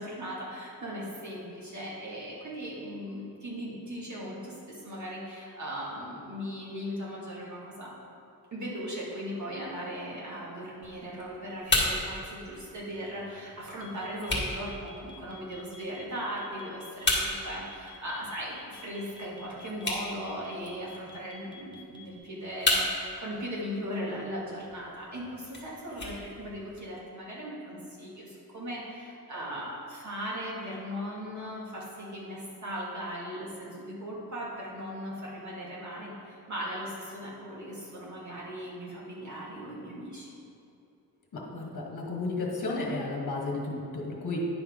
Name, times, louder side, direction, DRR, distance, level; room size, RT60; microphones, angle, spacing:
voice 1, 0.0-7.9 8.5-40.3, equal, 50° right, -6 dB, 2.0 m, -38 dB
sound 1, 10.8-26.8, left 2 dB, 30° left, 1.5 m, -35 dB
sound 2, 13.8-22.2, left 6 dB, 15° left, 0.7 m, -51 dB
voice 2, 41.3-44.4, left 3 dB, 55° left, -1 dB, 1.3 m, -33 dB
9.8 x 5.8 x 3.6 m, 2.7 s
wide cardioid pair, 130°, 38 cm